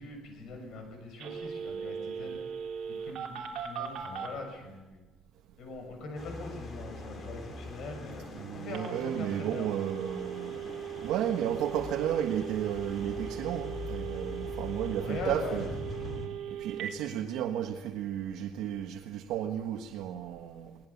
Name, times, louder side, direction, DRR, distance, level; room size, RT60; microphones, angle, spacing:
voice 1, 0.0-2.4 2.9-5.0 5.6-8.2 8.5-9.8 14.9-15.6, left 3 dB, 55° left, 4 dB, 7.1 m, -42 dB
Telephone, 1.2-4.3 8.7-16.9, right 8 dB, 50° right, 3.8 m, -39 dB
sound 1, 6.1-16.3, left 3 dB, 30° left, 3.1 m, -43 dB
voice 2, 8.3-10.6 11.0-15.7 16.6-20.8, right 10 dB, 75° right, 3 dB, 1.5 m, -33 dB
23.0 x 18.5 x 7.2 m, 1.2 s
cardioid pair, 170°, 0 cm